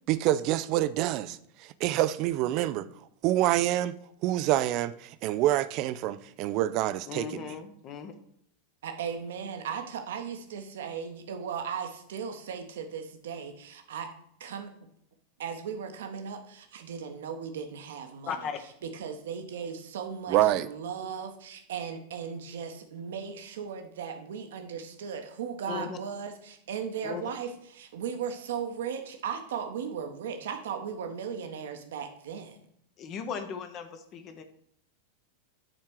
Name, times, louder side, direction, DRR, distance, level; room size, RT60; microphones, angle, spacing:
voice 1, 0.1-2.9 3.2-3.9 4.2-7.5 20.3-20.7, right 14 dB, 40° right, 0.5 m, -27 dB
voice 2, 7.1-8.1 18.3-18.6 25.7-26.0 27.0-27.2 33.0-34.4, left 6 dB, 35° left, 1.1 m, -37 dB
voice 3, 8.8-14.1 14.4-14.7 15.4-18.5 18.8-32.6, right 7 dB, 60° right, 1.1 m, -37 dB
9.1 x 4.4 x 6.3 m
figure-of-eight pair, 90°, 0 cm